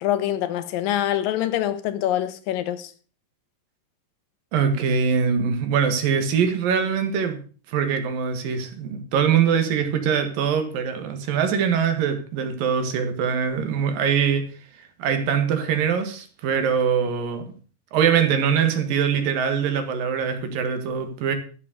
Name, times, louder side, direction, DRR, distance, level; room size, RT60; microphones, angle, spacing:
voice 1, 0.0-2.9, left 12 dB, 80° left, 2.8 m, -25 dB
voice 2, 4.5-7.4 7.7-14.4 15.0-17.4 17.9-21.4, right 7 dB, 80° right, 3.5 m, -23 dB
13.5 x 7.5 x 6.6 m
omnidirectional pair, 4.0 m